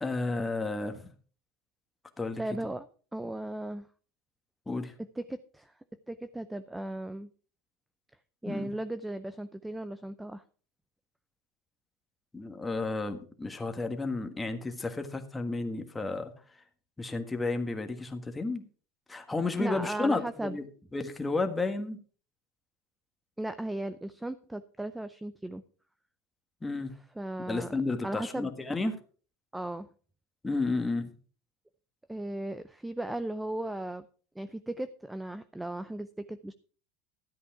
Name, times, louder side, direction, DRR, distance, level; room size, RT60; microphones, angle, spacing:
voice 1, 0.0-1.1 2.2-2.4 4.7-4.9 8.4-8.7 12.3-16.3 17.0-18.6 19.1-20.7 20.9-22.0 26.6-26.9 27.5-28.9 30.4-31.1, left 3 dB, 10° left, 6 dB, 1.5 m, -32 dB
voice 2, 2.4-2.9 3.1-3.9 5.2-5.7 6.1-7.3 8.4-10.4 19.6-20.6 23.4-25.6 27.2-27.7 28.0-28.5 29.5-29.9 32.1-34.0 34.4-36.5, right 1 dB, 5° right, 13 dB, 0.5 m, -36 dB
13.5 x 8.3 x 4.8 m, 0.41 s
supercardioid pair, 140°, 0 cm